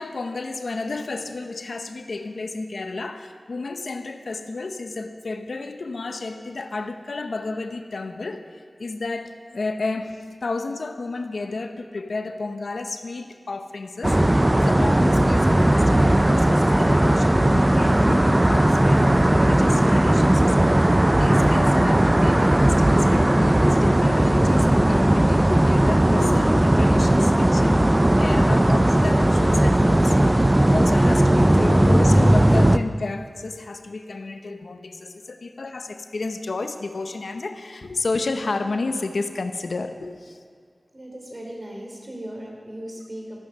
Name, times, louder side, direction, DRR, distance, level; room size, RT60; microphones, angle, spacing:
voice 1, 0.0-20.8 21.1-27.8 28.2-30.2 30.6-40.4, left 3 dB, 80° left, 7 dB, 0.8 m, -31 dB
sound 1, 14.0-32.8, right 1 dB, 20° right, 0.4 m, -17 dB
voice 2, 40.9-43.4, right 1 dB, 40° right, 0 dB, 2.9 m, -38 dB
14.0 x 9.5 x 6.6 m, 2.1 s
wide cardioid pair, 65°, 0 cm